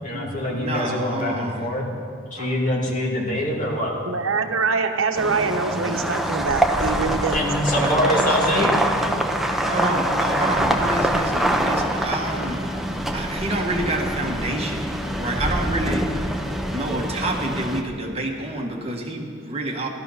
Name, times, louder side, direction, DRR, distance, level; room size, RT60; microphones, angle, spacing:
voice 1, 0.0-1.9 2.3-3.9 7.3-8.7, left 1 dB, 40° left, -3 dB, 2.7 m, -24 dB
voice 2, 0.6-1.8 2.4-2.5 7.7-8.7 9.6-14.9 15.2-16.1 16.7-19.9, right 2 dB, 30° right, 1 dB, 1.4 m, -28 dB
voice 3, 4.1-7.4, right 4 dB, 75° right, 6 dB, 0.9 m, -24 dB
sound 1, 5.2-17.8, right 1 dB, ahead, 0.7 m, -24 dB
15.0 x 13.0 x 5.7 m, 2.4 s
head